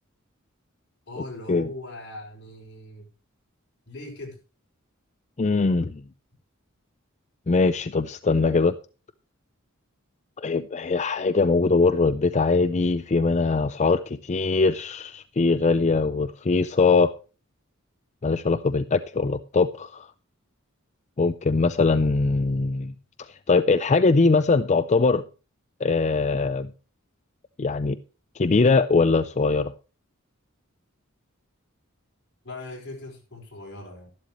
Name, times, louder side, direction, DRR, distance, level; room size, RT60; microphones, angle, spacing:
voice 1, 1.1-3.1 3.9-4.4 32.4-34.1, left 2 dB, 55° left, -1 dB, 5.0 m, -40 dB
voice 2, 5.4-6.0 7.5-8.7 10.4-17.1 18.2-20.1 21.2-22.9 23.2-25.2 25.8-26.7 27.6-28.0 28.4-29.7, left 3 dB, 35° left, 11 dB, 0.5 m, -22 dB
12.5 x 11.5 x 3.0 m, 0.34 s
head